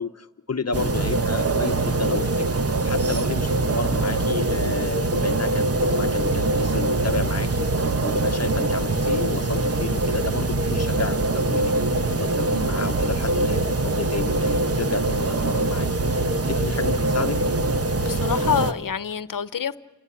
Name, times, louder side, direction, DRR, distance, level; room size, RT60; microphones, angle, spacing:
voice 1, 0.0-2.5 2.8-11.7 12.1-17.4, left 4 dB, 50° left, 0.9 m, -32 dB
sound 1, 0.7-18.7, right 2 dB, 45° right, 1.3 m, -23 dB
voice 2, 18.0-19.8, left 7 dB, 80° left, 0.9 m, -26 dB
29.5 x 18.0 x 8.5 m
wide cardioid pair, 65°, 32 cm